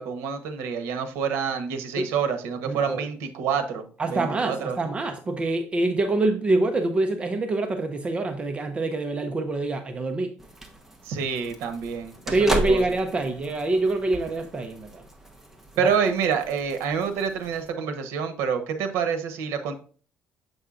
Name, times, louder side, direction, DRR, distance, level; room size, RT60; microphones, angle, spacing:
voice 1, 0.0-3.8 4.1-4.8 11.1-12.8 15.8-19.7, right 6 dB, 85° right, 0.9 m, -27 dB
voice 2, 2.7-3.1 4.0-10.3 12.3-15.0 15.8-15.9, right 2 dB, 25° right, 0.6 m, -25 dB
sound 1, 10.4-17.7, right 1 dB, 10° right, 1.0 m, -36 dB
7.7 x 5.4 x 2.4 m
cardioid pair, 125°, 4 cm